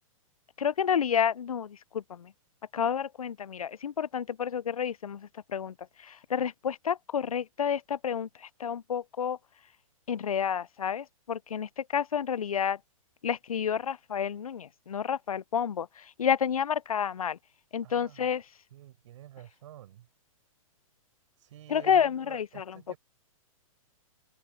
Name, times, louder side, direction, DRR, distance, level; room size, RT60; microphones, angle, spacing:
voice 1, 0.6-2.3 2.7-9.4 10.1-12.8 13.2-17.4 17.7-18.4 21.7-22.9, left 8 dB, 85° left, 0.6 m, -30 dB
voice 2, 17.8-18.3 18.7-20.1 21.4-23.0, right 13 dB, 60° right, 5.2 m, -50 dB
open air
hypercardioid pair, 120°, 18 cm